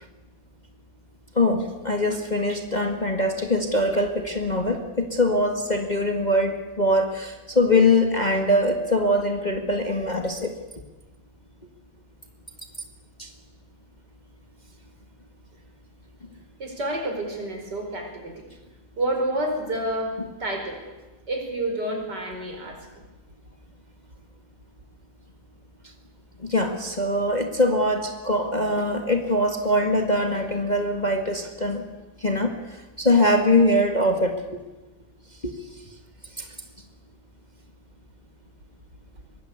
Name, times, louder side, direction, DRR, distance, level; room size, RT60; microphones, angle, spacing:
voice 1, 1.4-10.5 13.2-13.3 26.4-31.8 32.2-34.6 35.4-35.6 36.4-36.5, left 1 dB, 25° left, 4 dB, 1.8 m, -23 dB
voice 2, 16.6-18.4 19.0-20.1 20.4-20.8 21.3-22.8, right 1 dB, 60° right, 3 dB, 5.3 m, -29 dB
23.5 x 20.0 x 8.4 m, 1.2 s
omnidirectional pair, 2.1 m